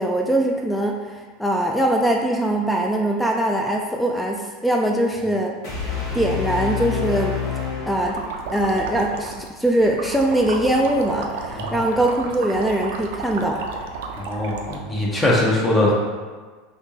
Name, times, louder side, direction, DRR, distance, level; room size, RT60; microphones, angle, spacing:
voice 1, 0.0-5.5 6.1-7.4 7.9-8.2 8.5-13.6, right 1 dB, 5° left, 1 dB, 0.3 m, -22 dB
sound 1, 5.6-8.7, left 6 dB, 60° left, 1.2 m, -28 dB
sound 2, 8.0-14.8, right 4 dB, 70° right, 0.4 m, -32 dB
voice 2, 14.2-15.9, left 1 dB, 20° left, -4 dB, 0.8 m, -21 dB
3.4 x 2.7 x 2.8 m, 1.4 s
hypercardioid pair, 85°, 0 cm